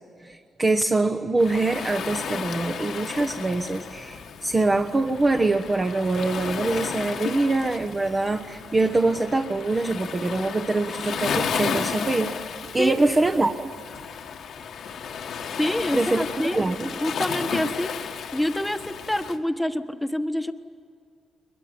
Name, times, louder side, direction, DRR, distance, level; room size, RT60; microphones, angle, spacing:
voice 1, 0.2-12.3 12.6-13.7 15.9-16.2 16.5-16.9, right 2 dB, 25° right, 6 dB, 1.2 m, -24 dB
Waves surf, 1.4-19.4, left 6 dB, 70° left, 1.5 m, -33 dB
voice 2, 15.6-16.6 17.0-20.5, left 1 dB, 5° left, 9 dB, 1.4 m, -27 dB
22.5 x 22.0 x 9.7 m, 2.3 s
cardioid pair, 80°, 0 cm